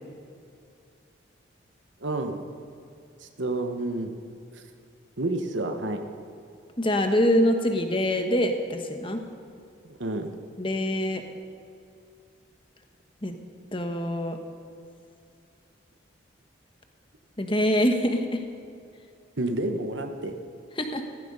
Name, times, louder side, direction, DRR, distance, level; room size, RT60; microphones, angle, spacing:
voice 1, 2.0-2.4 3.2-4.1 5.2-6.0 9.8-10.3 19.4-20.3, right 2 dB, 75° right, 6 dB, 1.1 m, -29 dB
voice 2, 6.8-9.2 10.6-11.2 13.2-13.3 13.7-14.4 17.4-18.4 20.8-21.1, equal, 25° left, 6 dB, 1.2 m, -24 dB
15.5 x 15.0 x 5.5 m, 2.5 s
head